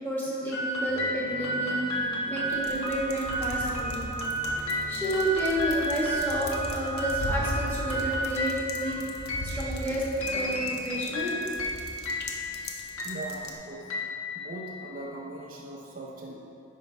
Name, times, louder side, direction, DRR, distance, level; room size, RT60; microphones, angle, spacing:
voice 1, 0.0-4.0 4.5-9.0 9.4-10.0 10.3-10.6 10.8-11.3, right 1 dB, 10° left, -8 dB, 1.5 m, -31 dB
sound 1, 0.5-15.0, equal, 90° left, 1.0 m, -32 dB
sound 2, 0.9-12.6, equal, 20° right, 1.0 m, -45 dB
sound 3, 2.5-13.5, left 1 dB, 50° left, 0.7 m, -39 dB
voice 2, 13.0-13.9 14.3-16.4, right 2 dB, 40° right, -2 dB, 0.5 m, -40 dB
9.1 x 5.5 x 3.2 m, 2.7 s
head